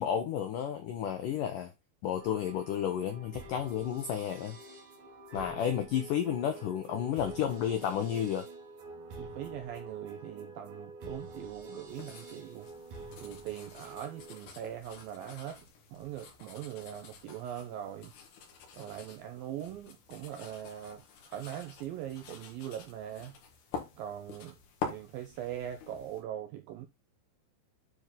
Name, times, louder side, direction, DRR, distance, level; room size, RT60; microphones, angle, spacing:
voice 1, 0.0-1.7 2.0-4.6 5.3-8.5, left 9 dB, 90° left, 1.9 m, -32 dB
sound 1, 2.2-14.4, right 2 dB, 55° right, 2.8 m, -47 dB
voice 2, 9.2-12.7 13.2-15.6 15.9-18.1 18.7-23.3 24.0-24.6 24.9-26.9, right 11 dB, 85° right, 2.1 m, -41 dB
sound 2, 11.9-26.2, left 5 dB, 65° left, 3.5 m, -47 dB
9.9 x 4.4 x 3.7 m
omnidirectional pair, 5.1 m